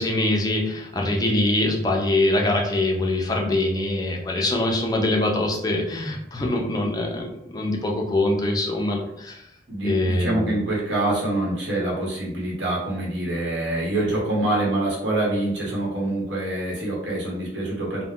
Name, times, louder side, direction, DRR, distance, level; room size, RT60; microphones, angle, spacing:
voice 1, 0.0-7.2 7.5-9.4 9.8-10.6, left 1 dB, 20° left, 0 dB, 0.4 m, -23 dB
voice 2, 9.7-18.0, right 1 dB, 90° right, -5 dB, 1.0 m, -25 dB
2.3 x 2.1 x 3.6 m, 0.79 s
head